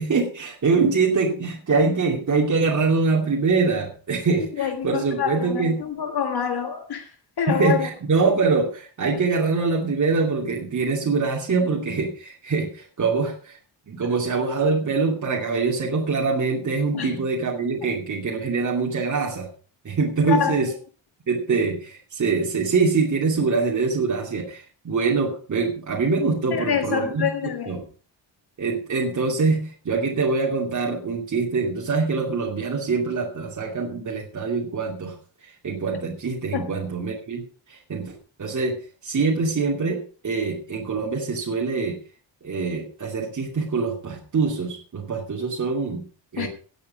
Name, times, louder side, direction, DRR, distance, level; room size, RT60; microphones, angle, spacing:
voice 1, 0.0-5.7 7.5-13.6 13.9-19.5 19.8-20.7 21.3-27.3 27.7-27.8 28.6-35.1 35.4-37.4 37.7-38.1 38.4-38.8 39.0-42.0 42.4-46.0 46.3-46.5, right 4 dB, 40° right, 2.8 m, -24 dB
voice 2, 4.6-7.9 16.9-17.2 20.3-20.6 26.5-27.8 36.5-36.8 46.4-46.5, left 8 dB, 60° left, 1.8 m, -26 dB
17.5 x 8.5 x 5.0 m
wide cardioid pair, 150°, 44 cm